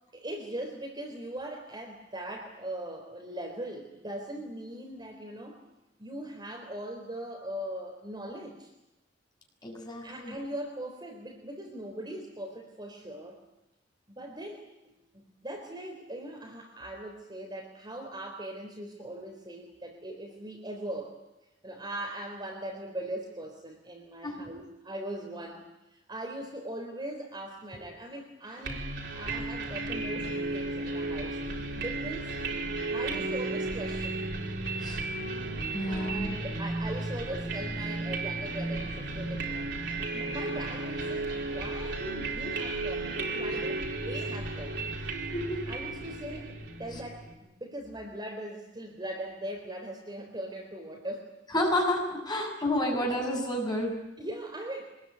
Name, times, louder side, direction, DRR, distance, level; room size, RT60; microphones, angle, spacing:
voice 1, 0.1-5.6 6.0-8.7 10.0-13.4 14.1-21.2 21.6-25.6 25.9-28.8 29.1-31.4 31.7-32.3 32.9-34.2 35.9-44.9 45.7-51.3 52.4-52.5 52.9-53.1 54.2-54.9, right 1 dB, 25° right, 2 dB, 3.6 m, -40 dB
voice 2, 9.6-10.3 24.2-24.5 34.8-35.0 35.7-36.3 45.3-45.6 51.5-53.9, left 1 dB, 25° left, 0 dB, 7.3 m, -30 dB
sound 1, 28.6-47.3, right 2 dB, 65° right, 4.4 m, -34 dB
25.0 x 20.5 x 9.4 m, 0.96 s
head